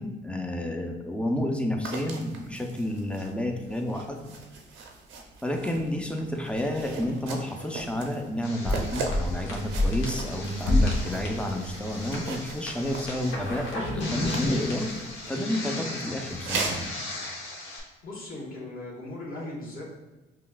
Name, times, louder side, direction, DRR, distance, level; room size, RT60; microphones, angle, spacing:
voice 1, 0.0-4.2 5.4-14.9 15.3-16.9, left 1 dB, 5° left, 2 dB, 0.5 m, -30 dB
sound 1, 1.8-15.3 16.3-16.9, right 4 dB, 75° right, 0.7 m, -39 dB
sound 2, 8.4-17.8, left 2 dB, 90° left, 0.9 m, -31 dB
voice 2, 18.0-19.9, left 2 dB, 45° left, -4 dB, 1.4 m, -38 dB
5.5 x 2.4 x 2.3 m, 1.1 s
cardioid pair, 90°, 20 cm